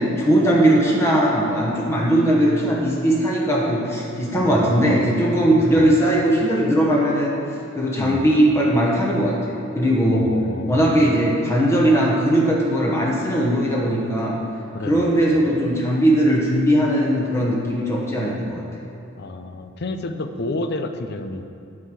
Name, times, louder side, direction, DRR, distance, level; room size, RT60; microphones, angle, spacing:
voice 1, 0.0-7.3 7.7-10.3 10.7-14.4 14.9-18.6, right 1 dB, 15° left, -4 dB, 1.1 m, -19 dB
voice 2, 4.3-5.1 5.6-5.9 8.0-8.3 10.1-11.0 14.7-15.3 19.2-21.4, left 2 dB, 50° left, 8 dB, 0.6 m, -30 dB
9.7 x 4.7 x 7.5 m, 2.6 s
head